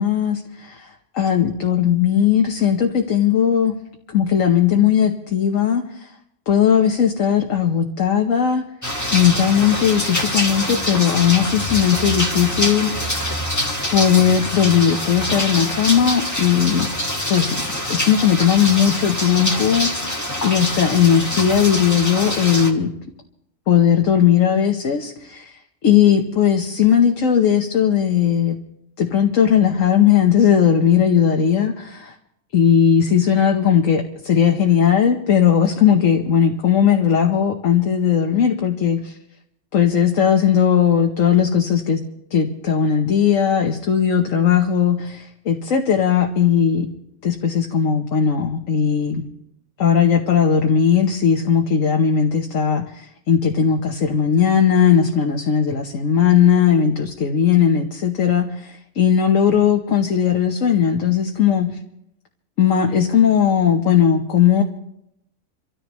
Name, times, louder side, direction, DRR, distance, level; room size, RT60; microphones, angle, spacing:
voice 1, 0.0-3.7 4.1-6.1 6.5-8.6 9.1-13.3 13.9-16.9 17.3-17.6 17.9-20.2 20.4-22.9 23.7-25.5 25.8-28.6 29.0-32.1 32.5-39.2 39.7-42.0 42.3-46.9 47.2-49.2 49.8-61.7 62.6-64.6, left 8 dB, 75° left, 3 dB, 1.4 m, -17 dB
sound 1, 8.8-22.7, left 1 dB, 15° left, 1.5 m, -25 dB
28.5 x 13.5 x 3.1 m, 0.80 s
omnidirectional pair, 1.4 m